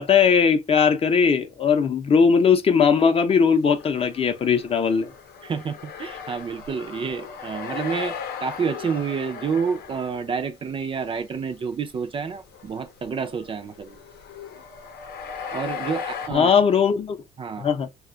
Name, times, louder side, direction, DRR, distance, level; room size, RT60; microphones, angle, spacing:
voice 1, 0.0-5.1 16.3-17.2 17.6-17.9, left 6 dB, 35° left, 0.6 m, -19 dB
sound 1, 3.7-10.4 10.9-11.2 11.5-11.6 12.2-16.3, left 6 dB, 70° left, 0.7 m, -37 dB
voice 2, 5.4-14.0 15.5-16.5 17.4-17.7, right 6 dB, 30° right, 0.4 m, -29 dB
2.4 x 2.3 x 3.7 m
cardioid pair, 110°, 17 cm